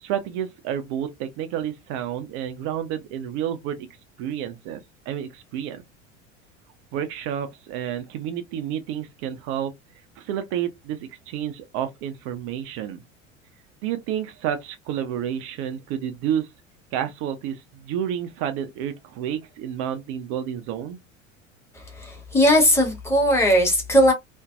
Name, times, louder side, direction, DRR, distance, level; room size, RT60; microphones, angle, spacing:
voice 1, 0.0-3.9 4.2-4.8 5.1-5.8 6.9-9.7 10.2-13.0 13.8-16.5 16.9-21.0, right 10 dB, 35° right, 0.4 m, -30 dB
voice 2, 22.0-24.1, equal, 5° left, 1.1 m, -18 dB
2.5 x 2.1 x 2.4 m
figure-of-eight pair, 75°, 39 cm